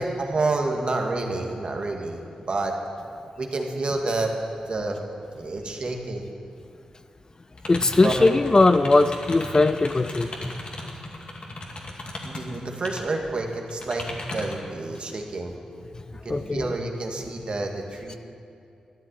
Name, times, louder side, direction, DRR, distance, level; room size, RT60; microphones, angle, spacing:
voice 1, 0.0-2.8 3.4-4.3 4.7-5.0 5.4-6.3 8.0-8.3 12.2-14.1 14.3-15.5 16.2-18.2, right 2 dB, 55° right, 2 dB, 2.0 m, -29 dB
sound 1, 7.6-13.0 13.4-14.7, left 2 dB, 55° left, 2.3 m, -36 dB
voice 2, 7.7-10.5 15.9-16.0 16.3-16.7, left 2 dB, 30° left, 11 dB, 0.5 m, -20 dB
13.5 x 9.8 x 8.3 m, 2.5 s
cardioid pair, 55°, 2 cm